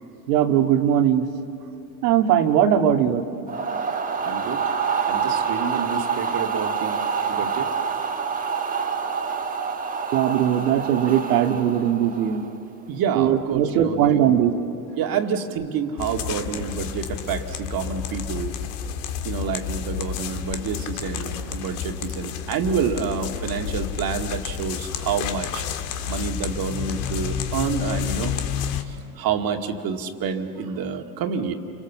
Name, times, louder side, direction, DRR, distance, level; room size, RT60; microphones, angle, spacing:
voice 1, 0.3-1.3 2.0-3.2 10.1-12.4 13.2-14.5, right 10 dB, 80° right, 5 dB, 2.0 m, -20 dB
sound 1, 3.5-12.6, right 6 dB, 20° right, 1.5 m, -27 dB
voice 2, 4.2-4.6 5.0-7.0 7.3-7.7 12.9-14.3 15.0-18.5 19.2-25.6 26.1-28.4 28.9-31.5, right 6 dB, 50° right, 4 dB, 2.1 m, -28 dB
sound 2, 16.0-28.8, left 8 dB, 70° left, 1.8 m, -30 dB
30.0 x 24.5 x 7.3 m, 2.9 s
supercardioid pair, 105°, 46 cm